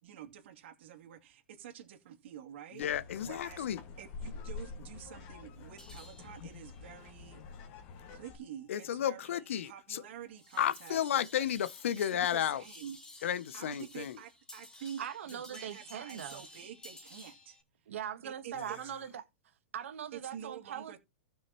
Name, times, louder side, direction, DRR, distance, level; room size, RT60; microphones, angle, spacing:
voice 1, 0.0-2.8 3.2-3.7 4.0-7.4 8.1-11.5 12.0-13.0 13.5-15.0 15.3-17.6 18.2-18.9 20.1-21.0, right 9 dB, 65° right, 2.5 m, -48 dB
voice 2, 2.7-3.8 8.7-10.0 10.6-12.6 13.2-14.2, left 10 dB, 80° left, 0.6 m, -32 dB
sound 1, 2.8-8.4, left 4 dB, 40° left, 1.8 m, -47 dB
sound 2, 5.8-17.6, left 1 dB, 10° left, 1.8 m, -55 dB
voice 3, 15.0-16.5 17.9-19.2 19.7-21.0, right 9 dB, 80° right, 1.2 m, -41 dB
15.5 x 6.2 x 3.0 m
hypercardioid pair, 150°, 7 cm